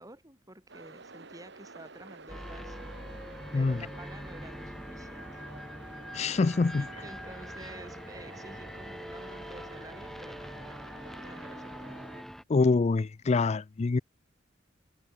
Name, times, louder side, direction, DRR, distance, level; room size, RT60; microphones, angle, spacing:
voice 1, 0.0-2.8 3.5-5.6 6.8-10.8 11.2-12.0, right 1 dB, 20° right, 6.5 m, -50 dB
sound 1, 0.7-12.2, right 3 dB, 65° right, 2.6 m, -51 dB
sound 2, 2.3-12.4, equal, ahead, 7.9 m, -43 dB
Musical instrument, 2.4-10.3, equal, 60° left, 7.6 m, -60 dB
voice 2, 6.1-6.9 12.5-14.0, left 3 dB, 35° left, 0.4 m, -25 dB
head